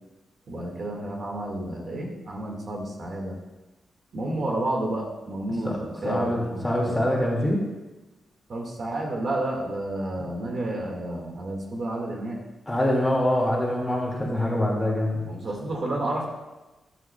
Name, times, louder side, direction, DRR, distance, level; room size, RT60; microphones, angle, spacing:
voice 1, 0.5-3.3 4.1-7.0 8.5-12.4 15.2-16.3, right 1 dB, 45° right, -1 dB, 1.7 m, -31 dB
voice 2, 5.6-7.6 12.7-15.2, left 1 dB, 10° left, -3 dB, 2.0 m, -25 dB
12.5 x 11.0 x 2.3 m, 1.1 s
wide cardioid pair, 165°, 0 cm